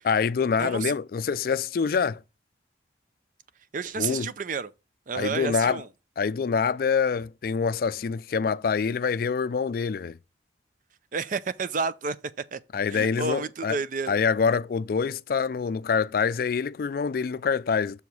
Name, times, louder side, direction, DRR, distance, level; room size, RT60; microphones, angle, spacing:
voice 1, 0.0-2.2 4.0-4.3 5.1-5.8 6.2-10.2 12.7-13.8 14.1-18.0, left 5 dB, 55° left, 0.3 m, -25 dB
voice 2, 0.6-0.9 3.7-4.7 5.1-5.9 11.1-12.2 12.5-12.6 12.9-14.2, right 4 dB, 45° right, 0.5 m, -30 dB
7.0 x 4.7 x 5.3 m
head